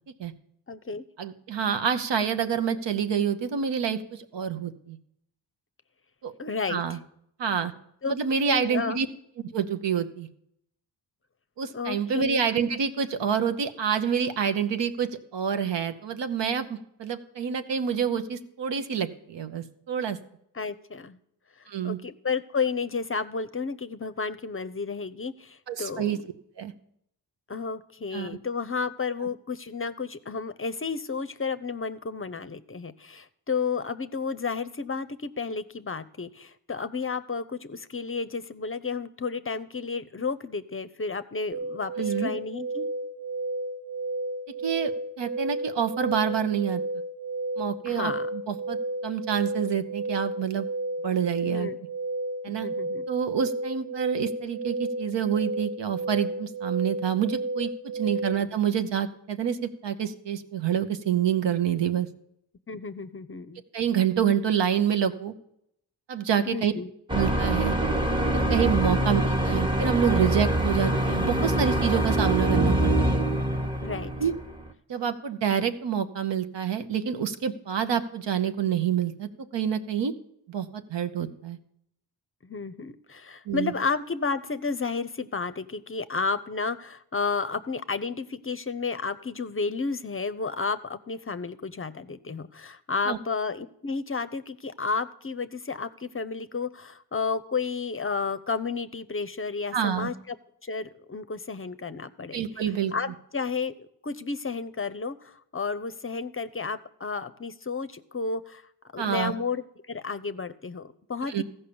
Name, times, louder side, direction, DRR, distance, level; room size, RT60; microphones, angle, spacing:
voice 1, 0.7-1.0 6.4-6.8 8.0-8.2 8.4-9.0 11.7-12.2 20.5-21.2 21.8-26.2 27.5-42.9 47.9-48.3 51.4-51.8 52.6-53.0 58.1-58.3 62.7-63.6 66.4-66.9 69.0-69.3 73.8-74.1 82.4-100.4 100.6-108.6 108.9-111.4, left 4 dB, 30° left, 13 dB, 0.6 m, -32 dB
voice 2, 1.2-5.0 6.2-6.3 6.7-7.0 7.4-7.7 8.0-9.1 9.5-10.3 11.6-20.2 21.7-22.0 25.7-26.2 26.6-26.7 28.1-28.4 42.0-42.3 44.6-44.9 45.2-46.8 47.6-48.8 49.0-50.7 51.0-51.7 52.4-52.7 53.1-62.1 63.7-65.3 66.1-66.7 67.1-67.8 68.3-73.2 74.2-74.3 74.9-80.1 80.5-81.6 83.5-83.7 93.1-93.2 99.7-100.1 102.3-102.9 109.0-109.3 111.3-111.4, right 8 dB, 70° right, 9 dB, 0.9 m, -27 dB
sound 1, 41.5-58.3, right 2 dB, 45° right, 1.1 m, -32 dB
sound 2, 67.1-74.7, right 1 dB, 10° right, 1.0 m, -24 dB
14.5 x 5.6 x 6.9 m, 0.75 s
cardioid pair, 50°, 45 cm